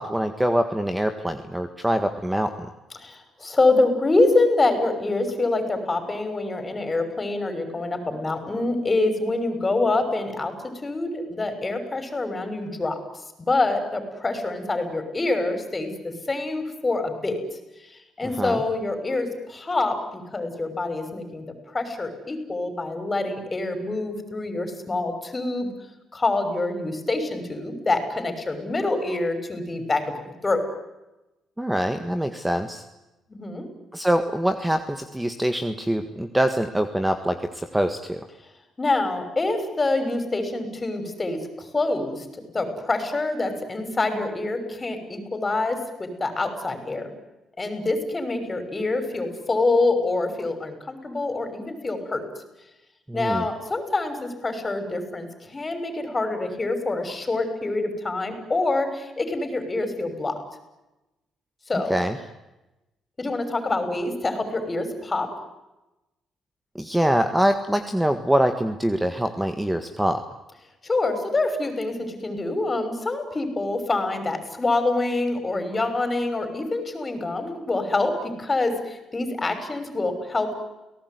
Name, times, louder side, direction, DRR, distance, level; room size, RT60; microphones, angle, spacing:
voice 1, 0.0-2.7 18.2-18.6 31.6-32.8 33.9-38.2 53.1-53.5 61.9-62.2 66.7-70.2, right 1 dB, 5° right, 8 dB, 1.7 m, -24 dB
voice 2, 3.0-10.5 10.8-13.0 13.4-15.9 16.3-17.4 18.2-21.4 21.7-25.7 26.1-30.0 30.4-30.6 33.3-33.6 38.8-41.4 41.7-42.3 42.5-47.1 47.6-52.2 53.1-60.4 61.7-62.0 63.2-65.3 70.8-78.1 78.4-80.6, left 2 dB, 25° left, 8 dB, 6.2 m, -26 dB
30.0 x 18.5 x 9.6 m, 1.0 s
cardioid pair, 90°, 0 cm